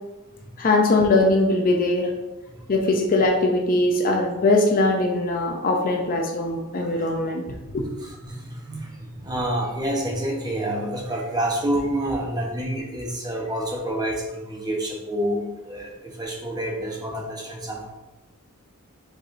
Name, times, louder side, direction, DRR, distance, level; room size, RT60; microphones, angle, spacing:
voice 1, 0.6-2.1 2.7-7.8, left 2 dB, 40° left, 1 dB, 0.5 m, -21 dB
voice 2, 8.0-17.9, right 1 dB, 20° right, -1 dB, 0.8 m, -28 dB
4.7 x 4.1 x 2.5 m, 1.0 s
head